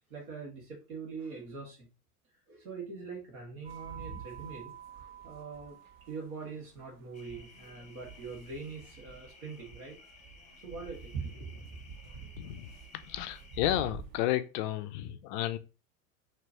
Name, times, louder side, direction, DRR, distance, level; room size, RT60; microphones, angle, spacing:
voice 1, 0.1-1.9 2.5-4.7 5.2-5.8 6.1-10.1 10.6-11.8, right 4 dB, 65° right, 1.9 m, -43 dB
sound 1, 3.6-14.2, right 7 dB, 35° right, 0.9 m, -48 dB
sound 2, 7.1-13.6, left 4 dB, 15° left, 0.8 m, -57 dB
voice 2, 12.4-15.6, left 14 dB, 35° left, 0.4 m, -32 dB
4.5 x 3.0 x 2.8 m
hypercardioid pair, 90°, 46 cm